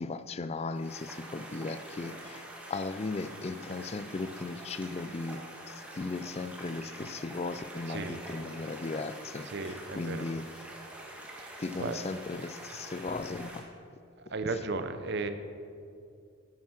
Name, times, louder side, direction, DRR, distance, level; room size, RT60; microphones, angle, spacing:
voice 1, 0.0-5.4 5.7-10.4 11.6-13.6, left 3 dB, 30° left, 12 dB, 0.3 m, -37 dB
sound 1, 0.7-13.6, right 1 dB, 5° right, 1.3 m, -46 dB
voice 2, 7.9-8.2 9.4-10.3 11.4-12.0 14.2-15.3, right 3 dB, 50° right, 9 dB, 0.7 m, -35 dB
9.6 x 9.0 x 6.0 m, 2.4 s
head